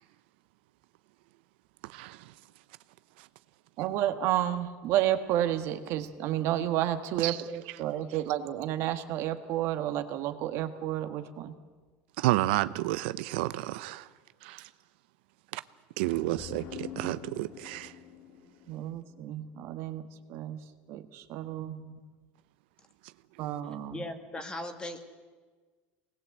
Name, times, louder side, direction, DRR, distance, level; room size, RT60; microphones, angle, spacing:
voice 1, 3.8-11.5 18.7-20.0 20.3-20.6 20.9-22.0 23.4-24.0, right 12 dB, 55° right, 8 dB, 1.6 m, -31 dB
voice 2, 12.2-14.1 14.4-14.7 15.5-15.6 16.0-17.9, right 17 dB, 85° right, 14 dB, 0.7 m, -30 dB
sound 1, 16.0-19.7, left 9 dB, 50° left, 1.9 m, -46 dB
voice 3, 23.9-25.0, left 1 dB, 15° left, 7 dB, 2.0 m, -38 dB
24.5 x 19.5 x 8.0 m, 1.4 s
cardioid pair, 155°, 6 cm